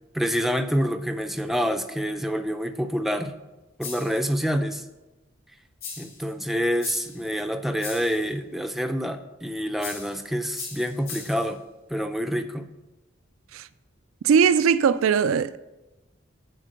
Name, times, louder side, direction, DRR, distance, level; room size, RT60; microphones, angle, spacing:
voice 1, 0.1-3.3 3.8-4.9 6.0-11.6 11.9-12.7, equal, ahead, 0.5 m, -27 dB
sound 1, 3.8-4.2 5.8-6.2 6.8-7.2 7.8-8.2 9.8-10.2 10.6-11.5, left 5 dB, 80° left, 3.2 m, -38 dB
voice 2, 14.2-15.6, right 7 dB, 85° right, 0.3 m, -20 dB
10.0 x 4.6 x 6.5 m
head